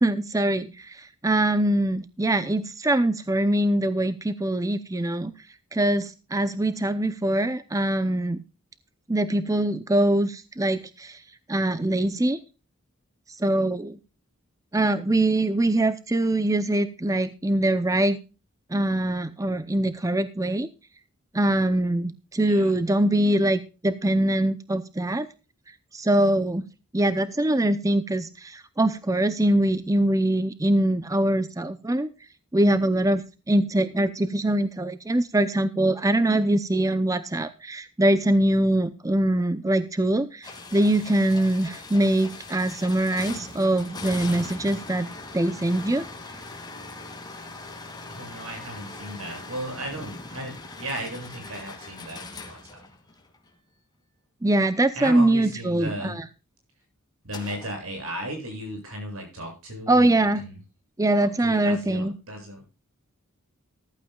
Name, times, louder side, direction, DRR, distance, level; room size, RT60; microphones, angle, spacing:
voice 1, 0.0-5.3 5.7-8.4 9.1-11.2 11.5-12.4 13.3-14.0 14.7-18.2 18.7-20.7 21.3-25.3 25.9-26.6 26.9-32.1 32.5-46.1 54.4-56.3 59.9-60.4 61.0-62.1, right 1 dB, 15° right, 12 dB, 0.6 m, -23 dB
sound 1, 40.4-53.5 57.3-57.8, left 3 dB, 20° left, 2.5 m, -40 dB
voice 2, 48.1-52.8 54.9-56.2 57.2-60.6 61.4-62.6, equal, 75° right, 3 dB, 8.0 m, -35 dB
15.0 x 14.0 x 2.3 m, 0.32 s
head